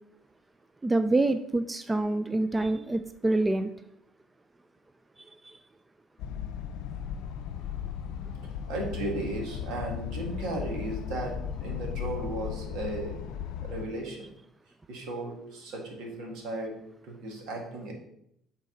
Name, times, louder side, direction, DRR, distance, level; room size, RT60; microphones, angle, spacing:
voice 1, 0.8-3.7 5.4-5.6, right 2 dB, 15° right, 10 dB, 0.3 m, -26 dB
sound 1, 6.2-13.9, left 8 dB, 75° left, 0.5 m, -36 dB
voice 2, 8.7-13.3 13.6-14.2 14.9-16.8 17.0-17.9, right 2 dB, 80° right, 1 dB, 1.9 m, -35 dB
8.9 x 4.1 x 3.9 m, 0.75 s
cardioid pair, 105°, 0 cm